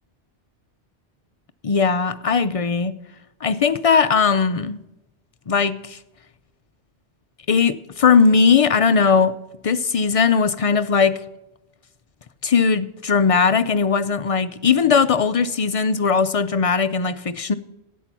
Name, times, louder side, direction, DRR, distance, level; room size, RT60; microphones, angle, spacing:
voice 1, 1.6-2.9 3.4-4.8 5.5-6.0 7.5-9.3 9.6-11.2 12.4-17.5, left 5 dB, 60° left, 12 dB, 0.3 m, -19 dB
11.0 x 8.2 x 6.0 m, 0.95 s
omnidirectional pair, 1.2 m